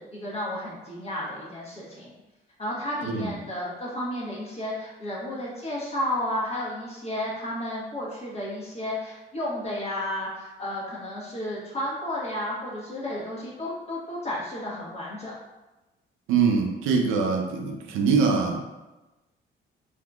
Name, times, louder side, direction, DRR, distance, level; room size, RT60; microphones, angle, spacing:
voice 1, 0.0-2.1 2.6-15.3, left 1 dB, 30° left, -5 dB, 1.2 m, -32 dB
voice 2, 16.3-18.6, right 5 dB, 90° right, 3 dB, 0.5 m, -23 dB
3.6 x 2.7 x 2.3 m, 1.1 s
cardioid pair, 90°, 20 cm